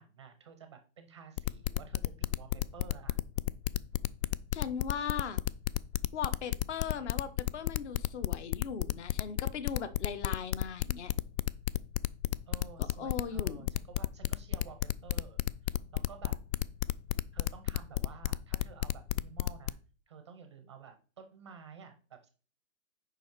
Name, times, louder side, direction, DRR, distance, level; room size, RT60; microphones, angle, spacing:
voice 1, 0.0-3.2 12.5-16.4 17.3-19.8 20.1-22.3, right 6 dB, 20° right, 7 dB, 0.4 m, -52 dB
sound 1, 1.4-19.7, left 13 dB, 70° left, 0.5 m, -31 dB
voice 2, 4.5-5.4 6.1-11.1 12.8-13.7, left 7 dB, 50° left, 13 dB, 0.9 m, -38 dB
7.1 x 5.0 x 4.5 m, 0.39 s
hypercardioid pair, 165°, 43 cm